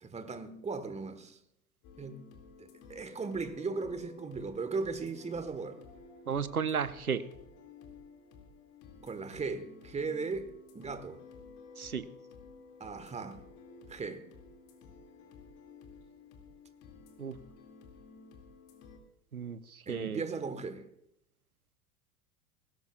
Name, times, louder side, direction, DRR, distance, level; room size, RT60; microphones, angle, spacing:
voice 1, 0.0-1.4 2.0-2.2 2.6-5.8 9.0-11.2 12.8-13.4 13.9-14.2 19.9-20.9, right 4 dB, 15° right, 1.4 m, -37 dB
sound 1, 1.8-19.0, left 4 dB, 45° left, 2.4 m, -53 dB
voice 2, 6.3-7.2 11.8-12.1 17.2-17.4 19.3-20.2, right 6 dB, 90° right, 0.7 m, -34 dB
19.5 x 17.0 x 2.4 m
figure-of-eight pair, 75°, 43 cm